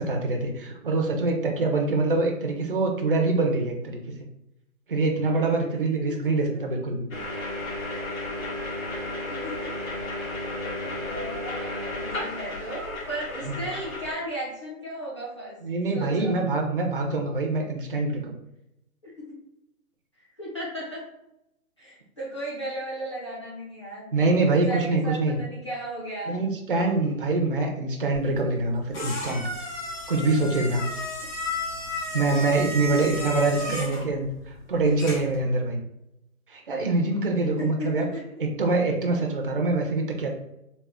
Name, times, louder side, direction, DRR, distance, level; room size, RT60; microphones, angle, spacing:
voice 1, 0.0-4.0 4.9-7.1 10.8-10.9 13.4-13.6 15.6-18.3 24.1-25.4 26.3-29.5 30.1-30.9 32.1-35.8 36.5-38.1 38.4-40.3, right 3 dB, 40° right, 2 dB, 0.4 m, -25 dB
voice 2, 6.1-6.5 9.1-9.7 10.8-15.6 15.9-16.4 19.0-19.4 20.2-21.0 21.8-26.4 31.2-31.3 32.9-33.9 34.8-34.9 37.4-38.4, equal, 20° left, -7 dB, 0.5 m, -36 dB
sound 1, 7.1-14.1, left 2 dB, 70° left, 1.5 m, -33 dB
sound 2, 28.1-35.4, left 1 dB, 55° left, 1.5 m, -34 dB
3.3 x 2.1 x 3.4 m, 0.86 s
hypercardioid pair, 170°, 43 cm